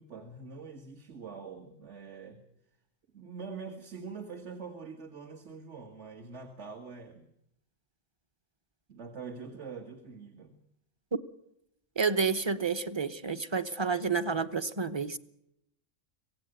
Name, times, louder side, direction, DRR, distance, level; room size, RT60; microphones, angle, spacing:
voice 1, 0.0-2.4 3.1-7.3 8.9-10.5, right 5 dB, 60° right, 4 dB, 2.1 m, -44 dB
voice 2, 12.0-15.2, right 5 dB, 25° right, 11 dB, 0.9 m, -30 dB
25.0 x 17.5 x 9.0 m, 0.80 s
omnidirectional pair, 1.4 m